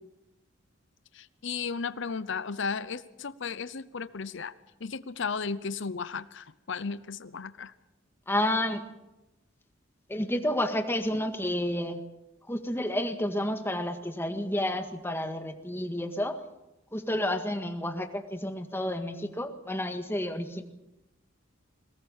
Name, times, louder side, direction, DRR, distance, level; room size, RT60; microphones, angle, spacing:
voice 1, 1.1-4.5 4.8-7.7, left 5 dB, 65° left, 14 dB, 0.7 m, -35 dB
voice 2, 8.3-8.8 10.1-12.0 12.5-16.4 16.9-20.6, left 1 dB, 10° left, 6 dB, 1.8 m, -30 dB
22.5 x 18.5 x 7.3 m, 0.96 s
head